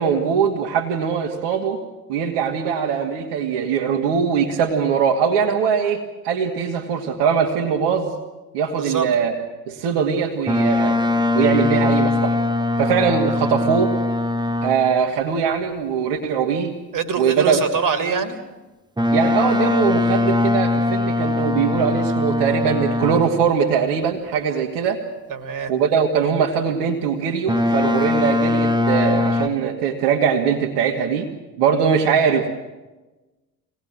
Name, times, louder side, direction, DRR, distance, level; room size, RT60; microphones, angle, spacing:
voice 1, 0.0-1.8 2.1-8.1 8.5-9.3 9.7-11.0 11.3-12.4 12.8-13.9 14.6-16.7 17.2-17.6 19.1-25.0 25.7-31.3 31.6-32.5, right 7 dB, 60° right, -1 dB, 2.3 m, -21 dB
voice 2, 8.8-9.1 9.9-10.1 16.9-18.4 25.3-25.7, right 5 dB, 40° right, 8 dB, 3.0 m, -24 dB
Boat Water vehicle, 10.5-15.0 19.0-23.5 27.5-29.5, left 2 dB, 10° right, 1.6 m, -21 dB
24.5 x 19.5 x 7.6 m, 1.1 s
figure-of-eight pair, 60°, 47 cm